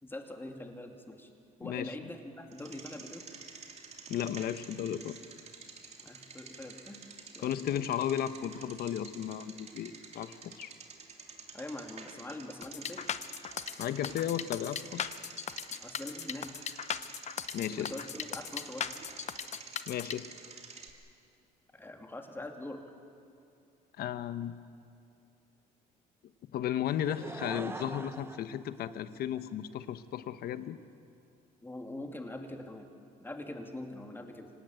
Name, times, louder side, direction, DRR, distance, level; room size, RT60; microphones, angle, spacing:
voice 1, 0.0-1.3 1.6-3.2 6.0-7.0 7.3-7.9 11.5-13.1 15.8-16.5 17.8-18.9 21.7-22.8 31.6-32.9 33.2-34.5, left 1 dB, 10° left, 4 dB, 2.6 m, -43 dB
voice 2, 1.6-1.9 4.1-5.2 7.4-10.7 13.8-15.1 17.5-17.9 19.9-20.3 24.0-24.5 26.5-30.8, left 10 dB, 65° left, 12 dB, 1.1 m, -34 dB
Bicycle, 2.5-20.9, right 5 dB, 40° right, 2.7 m, -49 dB
sound 1, 12.6-20.1, left 8 dB, 40° left, 0.8 m, -38 dB
Laughter / Crowd, 26.9-29.5 30.2-30.3, right 2 dB, 15° right, 0.9 m, -43 dB
25.0 x 18.5 x 9.1 m, 2.5 s
cardioid pair, 110°, 17 cm